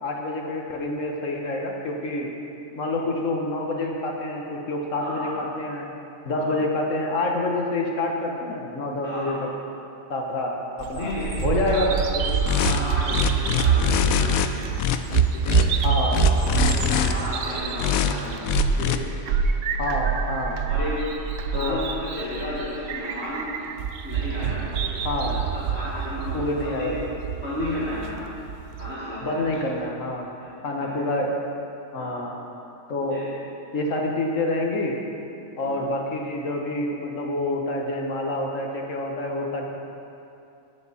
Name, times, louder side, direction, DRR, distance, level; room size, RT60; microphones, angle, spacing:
voice 1, 0.0-2.3 2.8-5.9 6.2-9.4 10.1-11.1 11.4-11.9 15.8-16.2 19.8-20.6 21.5-21.8 25.0-25.4 26.3-27.1 29.2-30.2 30.6-31.4 31.9-32.3 32.9-33.2 33.7-34.9 35.6-39.7, left 2 dB, 65° left, 0 dB, 1.5 m, -27 dB
voice 2, 5.0-5.3 6.4-6.5 9.0-9.4 10.9-11.3 11.7-11.8 12.1-14.7 15.3-15.6 16.3-18.5 18.8-19.0 20.7-21.0 21.5-23.4 24.0-26.9 27.4-28.2 28.8-29.4 30.4-30.5 30.8-30.9 32.0-32.2 33.0-33.2 35.6-35.8, left 1 dB, 50° left, -11 dB, 2.3 m, -33 dB
Bird vocalization bird call bird song, 10.8-28.9, right 7 dB, 70° right, 1.0 m, -26 dB
sound 1, 12.5-12.8 13.1-14.5 14.8-15.6 16.1-17.1 17.8-18.1 18.4-19.0, left 9 dB, 85° left, 1.0 m, -23 dB
18.0 x 7.0 x 4.2 m, 2.7 s
omnidirectional pair, 1.4 m